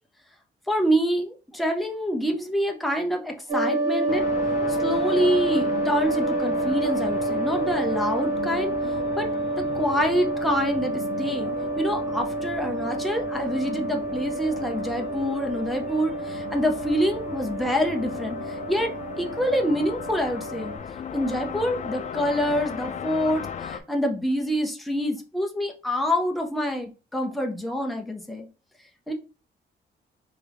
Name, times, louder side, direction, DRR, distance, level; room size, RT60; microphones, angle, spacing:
voice 1, 0.7-4.3 4.7-8.7 9.2-9.3 9.6-11.5 11.8-20.7 21.1-28.5 29.1-29.2, equal, ahead, 2 dB, 0.7 m, -26 dB
sound 1, 3.5-20.8, right 2 dB, 40° right, 1.8 m, -29 dB
sound 2, 4.1-23.8, left 7 dB, 40° left, 0.4 m, -37 dB
3.7 x 3.4 x 3.4 m, 0.33 s
wide cardioid pair, 155°, 19 cm